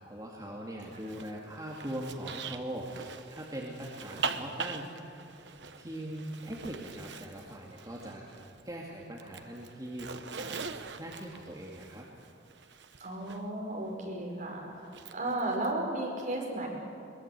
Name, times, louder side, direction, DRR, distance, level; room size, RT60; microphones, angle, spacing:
voice 1, 0.0-5.3 5.8-8.2 8.6-10.7 11.0-12.1, right 1 dB, 20° right, -3 dB, 2.3 m, -41 dB
Zipper (clothing), 0.9-8.7 9.0-13.4 14.8-15.7, right 5 dB, 75° right, 1.1 m, -42 dB
voice 2, 13.0-16.7, right 1 dB, 45° right, -1 dB, 5.6 m, -34 dB
23.0 x 20.5 x 8.2 m, 2.6 s
head